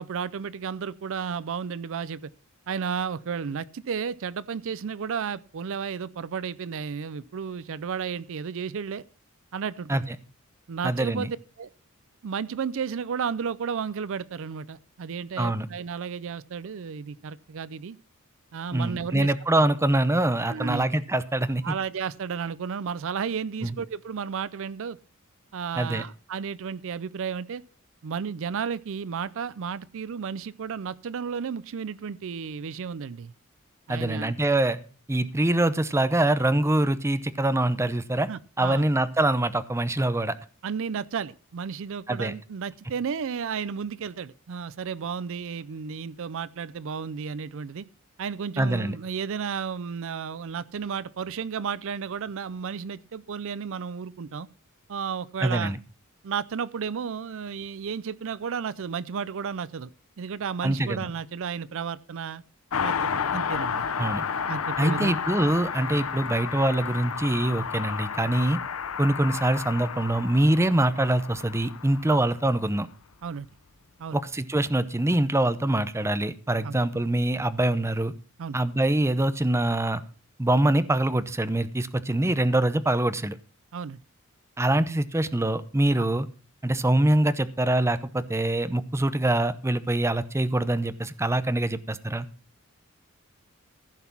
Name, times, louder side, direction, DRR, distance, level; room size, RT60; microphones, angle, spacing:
voice 1, 0.0-2.3 2.7-9.0 9.5-10.0 10.7-11.7 12.2-18.0 18.5-19.3 20.5-20.8 21.6-25.0 25.5-27.6 28.0-33.3 33.9-34.3 38.3-38.8 40.6-47.9 48.2-54.5 54.9-55.7 56.2-59.9 60.2-62.4 62.8-63.8 64.5-65.2 72.1-72.2 73.2-73.5 74.0-74.2 76.6-76.8 78.4-78.6 83.7-84.0 86.0-86.1, right 6 dB, 65° right, 0.5 m, -33 dB
voice 2, 10.8-11.3 15.4-15.7 18.7-21.7 23.6-23.7 25.8-26.0 33.9-34.8 35.1-38.3 38.6-40.4 42.1-42.3 48.6-48.9 55.4-55.8 60.6-61.1 64.0-64.2 64.8-68.6 69.0-72.9 74.1-78.1 78.5-80.0 80.4-83.4 84.6-86.3 86.6-92.3, right 1 dB, 15° right, 0.7 m, -24 dB
Car passing by, 62.7-72.7 72.9-73.0, left 6 dB, 80° left, 0.8 m, -32 dB
15.0 x 5.9 x 5.9 m
head